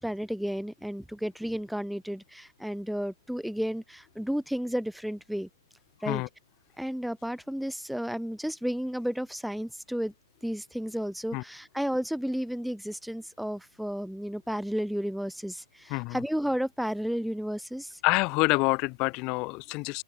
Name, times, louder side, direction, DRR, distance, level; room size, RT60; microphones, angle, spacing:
voice 1, 0.0-5.5 6.0-6.2 6.8-10.1 10.4-18.0, equal, ahead, 3.7 m, -32 dB
voice 2, 15.9-16.2 18.0-20.0, left 26 dB, 30° left, 7.4 m, -27 dB
open air
hypercardioid pair, 140°, 2 cm